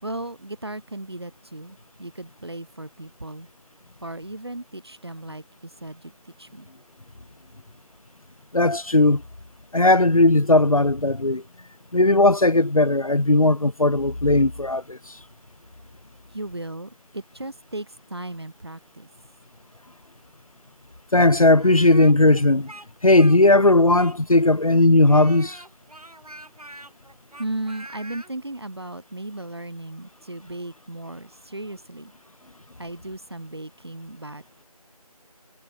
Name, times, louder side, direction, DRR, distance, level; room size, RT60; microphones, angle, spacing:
voice 1, 0.0-3.5 4.0-6.1 6.4-6.7 16.3-19.1 27.4-32.1 32.8-34.4, right 2 dB, 45° right, 2.5 m, -36 dB
voice 2, 8.5-9.2 9.7-11.4 11.9-15.2 21.1-22.7 23.0-25.6, left 2 dB, 65° left, 1.3 m, -17 dB
Speech, 21.5-24.4 25.1-28.3, right 1 dB, 75° right, 2.8 m, -43 dB
figure-of-eight pair, 175°, 19 cm